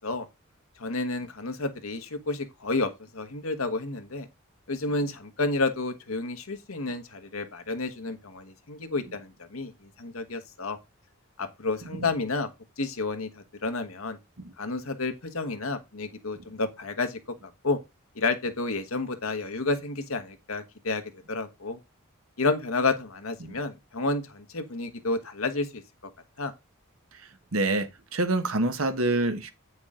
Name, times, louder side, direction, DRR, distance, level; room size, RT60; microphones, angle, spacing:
voice 1, 0.8-4.3 4.7-9.7 10.0-10.8 11.4-12.5 12.8-14.2 14.6-17.2 17.6-17.8 18.1-21.0 21.3-21.8 22.4-25.8 26.4-26.5, left 3 dB, 85° left, 1.3 m, -30 dB
voice 2, 27.5-29.5, right 2 dB, 80° right, 1.3 m, -27 dB
8.8 x 6.1 x 3.7 m
head